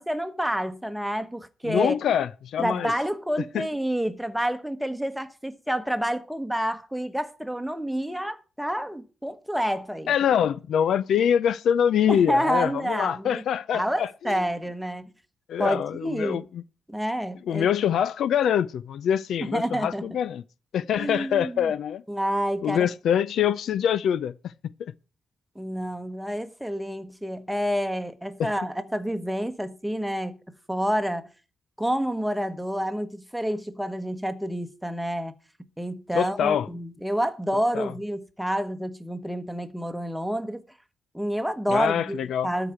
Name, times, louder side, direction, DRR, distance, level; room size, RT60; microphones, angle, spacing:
voice 1, 0.0-2.0 2.6-10.1 12.1-13.4 13.7-15.1 15.6-16.5 16.9-17.7 19.4-20.1 21.0-21.7 22.1-22.9 25.5-30.4 30.7-31.3 31.8-35.3 35.8-40.6 41.1-42.7, equal, ahead, 1.1 m, -28 dB
voice 2, 1.6-2.9 3.5-3.7 10.1-14.4 15.5-16.6 17.5-20.4 20.7-22.0 22.6-24.3 24.8-24.9 28.4-28.5 36.1-36.7 37.7-37.9 41.7-42.5, left 9 dB, 75° left, 0.5 m, -24 dB
13.0 x 4.8 x 8.7 m
cardioid pair, 125°, 0 cm